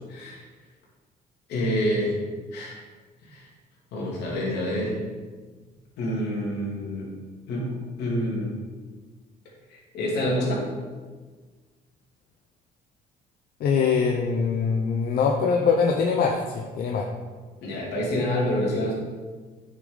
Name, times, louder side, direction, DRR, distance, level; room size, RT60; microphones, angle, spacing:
voice 1, 0.1-0.4 1.5-2.2 2.5-2.8 3.3-3.5 3.9-5.0 6.0-7.1 7.5-8.5 9.7-10.7 17.6-18.9, equal, 80° left, -3 dB, 2.9 m, -27 dB
voice 2, 13.6-17.1, left 5 dB, 60° left, 1 dB, 0.9 m, -23 dB
9.1 x 6.4 x 4.0 m, 1.4 s
cardioid pair, 110°, 17 cm